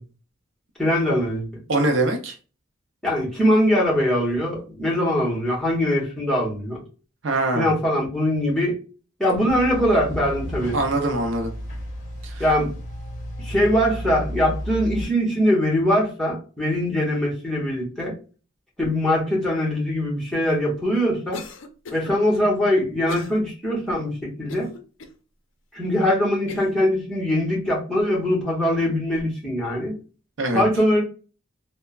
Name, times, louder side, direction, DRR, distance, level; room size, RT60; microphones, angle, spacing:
voice 1, 0.8-1.5 3.0-6.8 7.5-8.8 9.2-10.8 12.4-12.7 13.4-18.1 18.8-21.4 21.9-24.7 25.7-29.9 30.5-31.0, equal, 5° left, -5 dB, 1.0 m, -22 dB
voice 2, 1.7-2.3 7.2-7.7 10.7-11.5 12.2-12.4 30.4-30.6, right 2 dB, 70° right, 4 dB, 0.6 m, -23 dB
sound 1, 9.5-15.1, equal, 35° left, 0.8 m, -33 dB
Cough, 21.3-22.1 23.1-23.4 23.9-24.0 24.5-25.2 25.8-25.9 26.5-26.8, left 4 dB, 75° left, 0.5 m, -38 dB
3.2 x 2.1 x 2.3 m, 0.35 s
head